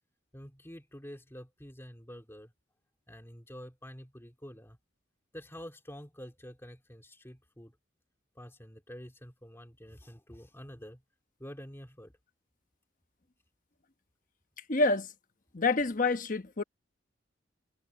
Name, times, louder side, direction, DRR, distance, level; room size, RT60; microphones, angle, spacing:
voice 1, 0.3-2.5 3.1-4.8 5.3-7.8 8.3-11.0 11.4-12.1, equal, 15° left, 2.5 m, -48 dB
voice 2, 14.7-15.1 15.5-16.6, left 3 dB, 45° left, 1.1 m, -27 dB
head